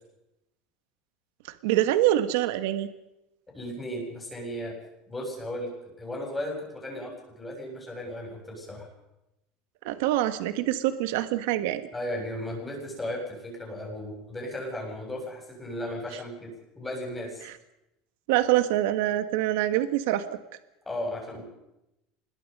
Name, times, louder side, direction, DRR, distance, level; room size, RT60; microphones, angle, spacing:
voice 1, 1.6-2.9 9.8-11.8 17.4-17.5 18.3-20.4, right 14 dB, 75° right, 10 dB, 1.5 m, -25 dB
voice 2, 3.5-4.7 5.1-5.7 6.0-8.9 11.9-16.5 16.8-17.4 20.9-21.4, left 1 dB, 10° left, 0 dB, 7.7 m, -35 dB
25.5 x 21.5 x 5.5 m, 0.90 s
supercardioid pair, 150°, 0 cm